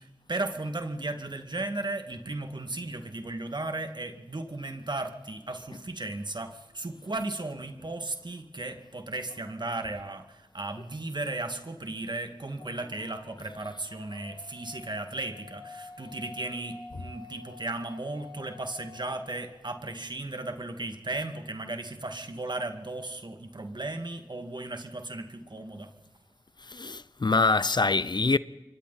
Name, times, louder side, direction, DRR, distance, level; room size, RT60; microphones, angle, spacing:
voice 1, 0.0-25.9, right 2 dB, 55° right, 2.3 m, -35 dB
sound 1, 9.3-10.1 12.5-20.0, left 4 dB, 70° left, 2.6 m, -50 dB
voice 2, 26.7-28.4, left 3 dB, 55° left, 0.7 m, -25 dB
28.0 x 24.0 x 4.3 m
cardioid pair, 40°, 9 cm